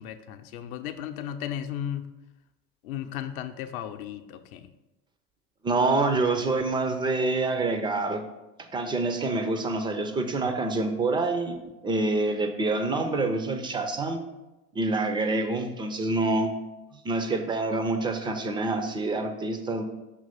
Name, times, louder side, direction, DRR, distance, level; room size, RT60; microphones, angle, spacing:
voice 1, 0.0-2.1 2.8-4.7, left 10 dB, 65° left, 7 dB, 0.7 m, -35 dB
voice 2, 5.6-8.2 8.7-11.6 11.8-14.2 14.8-16.5 17.0-19.8, right 3 dB, 10° right, 6 dB, 0.3 m, -26 dB
6.3 x 3.0 x 5.6 m, 1.0 s
hypercardioid pair, 90°, 46 cm